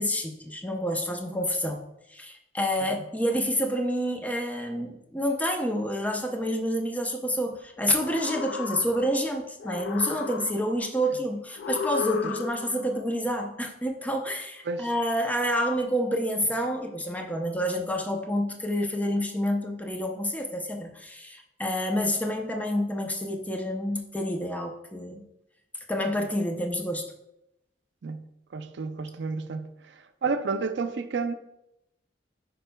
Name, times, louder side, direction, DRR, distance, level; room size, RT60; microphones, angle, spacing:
voice 1, 0.0-25.2 25.9-27.1, equal, 10° left, 0.6 m, -28 dB
sound 1, 7.9-9.3 9.6-10.9 11.6-12.9, left 6 dB, 70° left, 0.3 m, -34 dB
voice 2, 28.5-29.7 30.2-31.3, right 4 dB, 70° right, 0.5 m, -30 dB
9.0 x 5.2 x 2.2 m
head